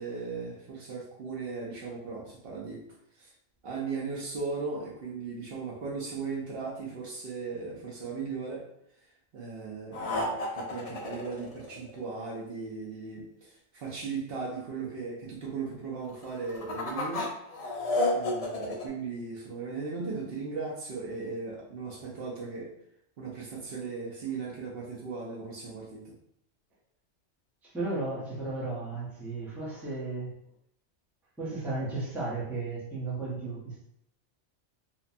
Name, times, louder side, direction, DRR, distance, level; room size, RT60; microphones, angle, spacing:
voice 1, 0.0-2.8 3.2-3.3 3.6-8.7 9.3-17.3 18.1-22.7 23.2-26.1, right 4 dB, 60° right, -3 dB, 0.8 m, -37 dB
sound 1, 9.9-12.1 16.2-18.8, left 2 dB, 65° left, 0.3 m, -31 dB
voice 2, 27.6-30.4 31.4-33.8, right 3 dB, ahead, -7 dB, 0.4 m, -34 dB
2.8 x 2.1 x 2.5 m, 0.73 s
omnidirectional pair, 1.2 m